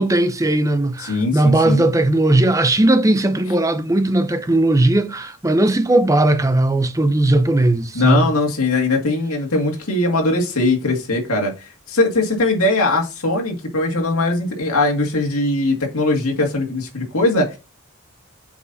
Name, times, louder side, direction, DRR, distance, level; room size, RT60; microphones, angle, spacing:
voice 1, 0.0-8.3, right 1 dB, 15° right, 0.6 m, -17 dB
voice 2, 1.0-1.8 7.9-11.5 11.9-17.6, left 2 dB, 80° left, 2.0 m, -20 dB
7.9 x 5.3 x 2.7 m
head